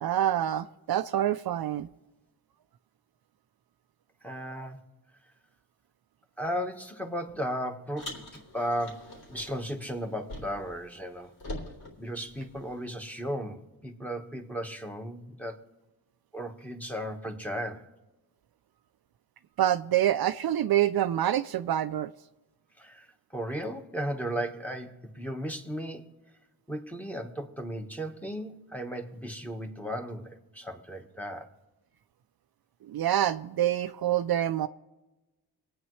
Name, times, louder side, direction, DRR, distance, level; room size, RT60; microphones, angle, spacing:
voice 1, 0.0-1.9 19.6-22.1 32.9-34.7, right 11 dB, 65° right, 0.5 m, -26 dB
voice 2, 4.2-4.9 6.4-11.3 12.0-15.6 16.3-17.9 22.8-26.1 26.7-31.5, equal, 5° left, 1.3 m, -35 dB
Car, 8.0-10.8 11.0-12.9, left 1 dB, 70° left, 3.4 m, -43 dB
26.5 x 9.0 x 3.2 m
wide cardioid pair, 105°, 40 cm